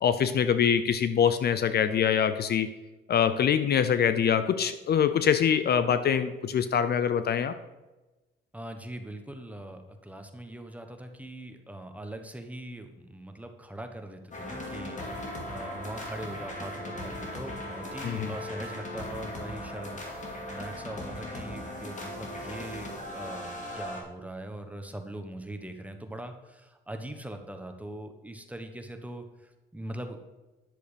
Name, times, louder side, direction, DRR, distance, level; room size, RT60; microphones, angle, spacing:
voice 1, 0.0-2.7 3.1-7.5 18.0-18.3, left 8 dB, 55° left, 12 dB, 0.6 m, -24 dB
voice 2, 8.5-30.2, right 1 dB, 5° right, 6 dB, 1.2 m, -41 dB
sound 1, 14.3-24.0, left 1 dB, 40° left, 2.4 m, -38 dB
10.5 x 6.7 x 5.1 m, 1.1 s
cardioid pair, 90°, 20 cm